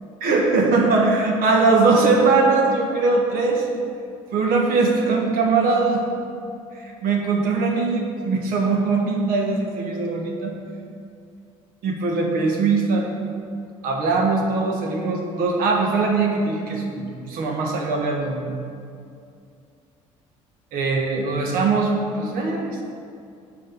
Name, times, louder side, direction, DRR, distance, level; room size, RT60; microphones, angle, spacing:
voice 1, 0.2-3.7 4.3-6.0 6.7-8.0 8.2-10.6 11.8-13.1 13.8-18.5 20.7-22.8, right 3 dB, 60° right, 1 dB, 1.4 m, -21 dB
7.8 x 5.0 x 5.4 m, 2.4 s
hypercardioid pair, 60°, 17 cm